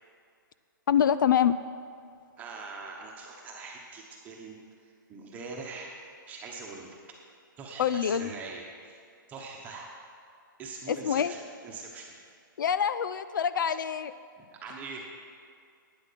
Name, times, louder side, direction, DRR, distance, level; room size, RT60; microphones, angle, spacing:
voice 1, 0.9-1.6 7.8-8.3 10.9-11.3 12.6-14.1, left 8 dB, 65° left, 14 dB, 0.4 m, -25 dB
voice 2, 2.4-4.6 5.1-7.0 7.6-9.0 9.3-9.9 10.6-12.2 14.4-15.1, right 4 dB, 15° right, -1 dB, 1.1 m, -42 dB
12.0 x 9.0 x 5.8 m, 2.3 s
hypercardioid pair, 160°, 11 cm